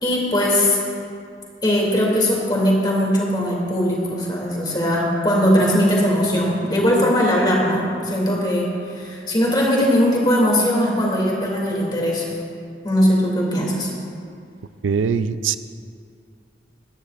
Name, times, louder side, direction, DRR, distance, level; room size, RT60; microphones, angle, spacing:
voice 1, 0.0-0.8 1.6-8.7 9.0-12.3 12.8-13.9, equal, 25° left, -3 dB, 2.6 m, -19 dB
voice 2, 14.8-15.6, right 6 dB, 85° right, 12 dB, 0.4 m, -21 dB
18.0 x 13.0 x 2.5 m, 2.4 s
head